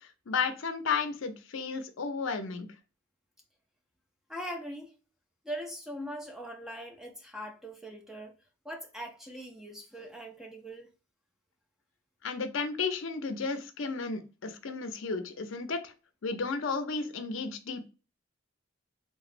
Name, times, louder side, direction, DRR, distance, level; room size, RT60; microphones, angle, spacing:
voice 1, 0.3-2.7 12.2-15.9 16.2-17.9, left 4 dB, 70° left, 0.5 m, -33 dB
voice 2, 4.3-4.9 5.4-8.3 8.6-10.9, equal, ahead, 0.4 m, -41 dB
3.5 x 3.1 x 2.4 m
head